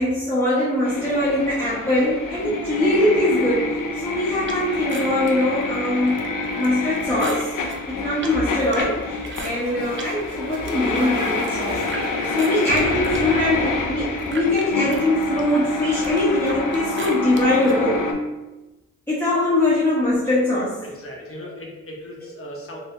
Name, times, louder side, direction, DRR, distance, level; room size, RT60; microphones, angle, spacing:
voice 1, 0.0-18.0 19.1-20.8 22.7-22.8, left 1 dB, 5° left, -11 dB, 1.2 m, -22 dB
sound 1, 0.8-18.1, left 3 dB, 80° left, 0.6 m, -27 dB
sound 2, 4.5-10.1 10.5-12.0 12.4-17.8, right 3 dB, 40° right, 0.6 m, -38 dB
sound 3, 9.3-14.9, equal, 65° right, 0.9 m, -35 dB
voice 2, 20.8-22.8, left 1 dB, 45° left, -1 dB, 0.9 m, -38 dB
3.2 x 2.8 x 3.6 m, 1.1 s
cardioid pair, 80°, 31 cm